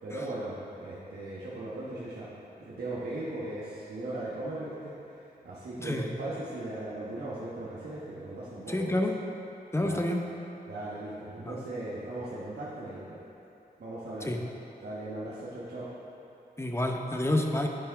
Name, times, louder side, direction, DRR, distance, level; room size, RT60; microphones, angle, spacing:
voice 1, 0.0-2.3 2.6-4.9 5.4-9.0 9.8-10.1 10.7-13.2 13.8-14.3 14.8-15.9, right 2 dB, 75° right, -9 dB, 1.2 m, -38 dB
voice 2, 8.7-9.2 9.7-10.2 11.4-11.6 14.2-14.4 16.6-17.7, left 1 dB, 15° left, 2 dB, 0.8 m, -28 dB
10.0 x 4.7 x 3.5 m, 2.9 s
cardioid pair, 50°, 17 cm